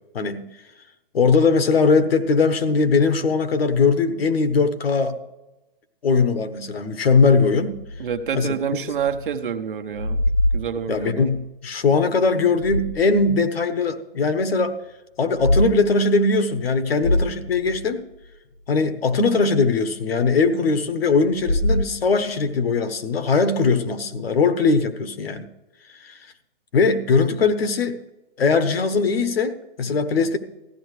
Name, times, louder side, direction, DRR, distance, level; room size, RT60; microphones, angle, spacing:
voice 1, 1.1-5.1 6.0-7.8 8.3-8.6 10.9-14.8 15.2-18.0 18.7-25.5 26.0-26.1 26.7-28.0 28.4-30.4, left 4 dB, 85° left, 9 dB, 1.2 m, -20 dB
sound 1, 7.7-9.4 9.7-11.4 12.3-13.4 13.8-13.9 15.2-15.6 16.0-16.2 16.6-16.7 17.0-18.3 21.3-22.4, left 1 dB, 65° left, 1.8 m, -25 dB
voice 2, 8.0-10.2 10.5-11.3, right 7 dB, 60° right, 7 dB, 1.0 m, -27 dB
15.0 x 11.5 x 3.2 m, 1.0 s
hypercardioid pair, 175°, 29 cm